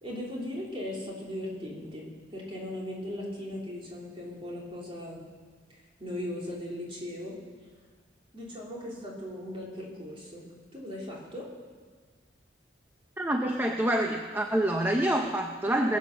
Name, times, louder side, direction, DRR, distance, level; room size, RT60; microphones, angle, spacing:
voice 1, 0.0-5.2 5.7-7.4 8.3-11.5, left 1 dB, 30° right, -4 dB, 3.3 m, -38 dB
voice 2, 13.2-16.0, right 1 dB, 10° right, 2 dB, 0.7 m, -27 dB
21.0 x 7.3 x 6.5 m, 1.5 s
head